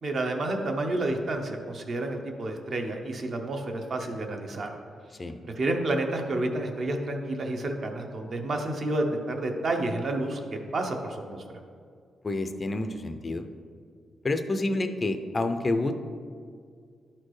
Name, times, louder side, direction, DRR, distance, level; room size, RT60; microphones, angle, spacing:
voice 1, 0.0-4.7 5.4-11.4, right 2 dB, 45° right, 3 dB, 0.8 m, -30 dB
voice 2, 12.2-13.4 14.2-15.9, left 2 dB, 25° left, 7 dB, 0.4 m, -28 dB
11.5 x 4.3 x 3.2 m, 2.1 s
wide cardioid pair, 145°, 0 cm